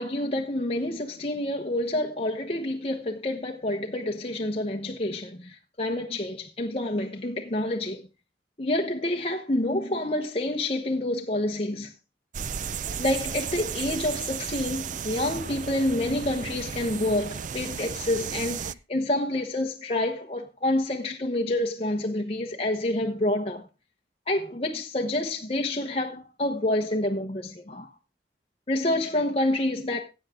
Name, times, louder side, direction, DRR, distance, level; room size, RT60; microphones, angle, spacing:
voice 1, 0.0-8.0 8.6-11.9 13.0-23.6 24.3-27.9 28.7-30.0, left 1 dB, 35° left, 1.2 m, -28 dB
sound 1, 12.3-18.7, right 7 dB, 45° right, 0.5 m, -34 dB
16.0 x 8.3 x 3.8 m
head